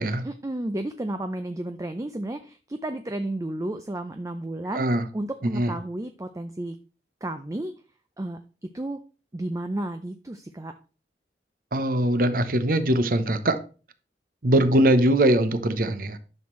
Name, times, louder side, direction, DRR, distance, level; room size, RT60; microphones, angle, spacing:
voice 1, 0.2-4.8 5.1-6.8 7.2-7.7 8.2-8.4 8.7-9.0 9.3-10.7, right 1 dB, 20° right, 0.4 m, -32 dB
voice 2, 4.7-5.0 5.5-5.7 11.7-13.6 14.4-16.2, right 1 dB, 50° right, 0.8 m, -21 dB
10.5 x 6.1 x 3.1 m
head